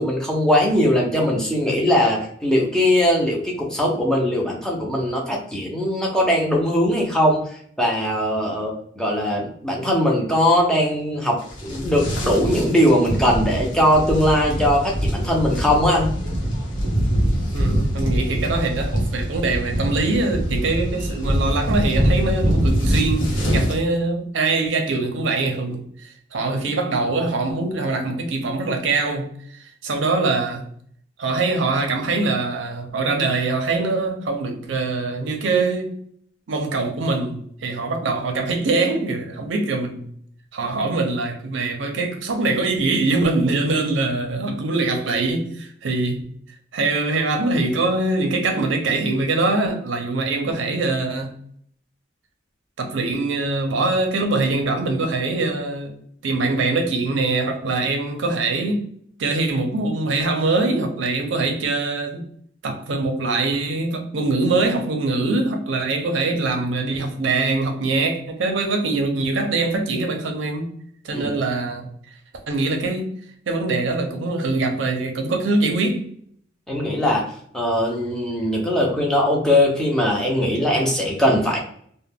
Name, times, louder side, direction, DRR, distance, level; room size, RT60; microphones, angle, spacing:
voice 1, 0.0-16.1 71.1-71.3 76.7-77.2 77.5-81.6, left 1 dB, 5° left, 0.5 m, -20 dB
sound 1, 11.4-23.8, equal, 75° left, 0.9 m, -23 dB
voice 2, 17.5-23.3 23.5-29.3 29.8-30.6 31.2-35.9 36.5-40.1 40.5-46.2 46.7-51.3 52.8-55.9 56.2-58.9 59.2-62.2 62.6-70.7 71.0-71.9 72.5-73.1 73.5-76.1, right 3 dB, 75° right, 0.5 m, -23 dB
2.2 x 2.1 x 3.3 m
head